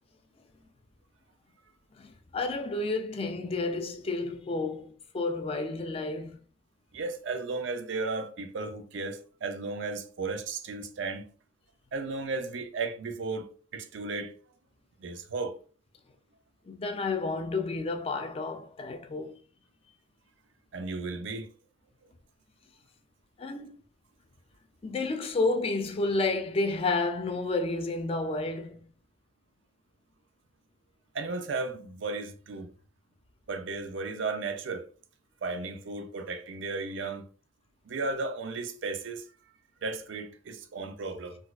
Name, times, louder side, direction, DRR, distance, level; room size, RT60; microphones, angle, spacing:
voice 1, 1.9-6.4 16.7-19.4 23.4-23.8 24.8-28.8, left 3 dB, 30° left, 0.4 m, -31 dB
voice 2, 6.9-11.3 11.9-14.3 15.0-15.6 20.7-21.5 31.1-32.7 33.5-34.9 35.4-37.2 37.9-39.2 39.8-41.4, right 3 dB, 80° right, 0.5 m, -34 dB
4.0 x 2.4 x 2.3 m
head